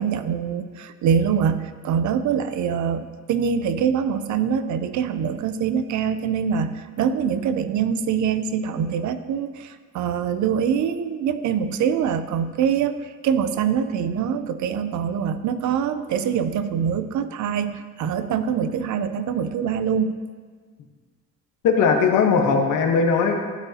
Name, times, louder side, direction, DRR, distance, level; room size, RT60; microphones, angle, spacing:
voice 1, 0.0-20.2, right 7 dB, 75° right, 11 dB, 0.6 m, -24 dB
voice 2, 21.6-23.3, left 5 dB, 85° left, 3 dB, 1.2 m, -19 dB
12.0 x 8.0 x 2.8 m, 1.5 s
cardioid pair, 90°, 30 cm